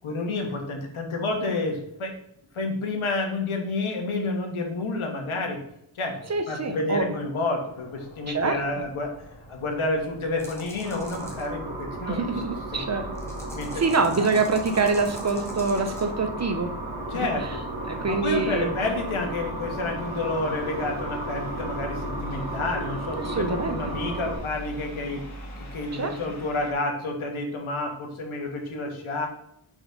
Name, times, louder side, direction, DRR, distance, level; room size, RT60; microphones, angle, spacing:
voice 1, 0.0-2.1 2.5-5.6 5.9-9.1 9.5-12.4 12.7-12.8 13.5-13.8 14.1-14.2 17.1-17.4 17.7-25.2 25.7-29.3, left 2 dB, 75° left, 2 dB, 1.5 m, -29 dB
voice 2, 6.3-7.1 8.3-8.6 12.1-13.1 13.8-16.7 17.1-17.5 17.8-18.7 23.2-23.9 25.9-26.2, right 4 dB, 35° right, 6 dB, 0.6 m, -25 dB
sound 1, 7.6-26.7, left 1 dB, 35° left, 1.4 m, -42 dB
sound 2, 10.4-11.5 13.1-16.1, equal, 5° left, 1.1 m, -44 dB
sound 3, 10.8-24.4, right 2 dB, 50° right, 1.5 m, -35 dB
4.5 x 4.4 x 5.2 m, 0.75 s
wide cardioid pair, 130°, 49 cm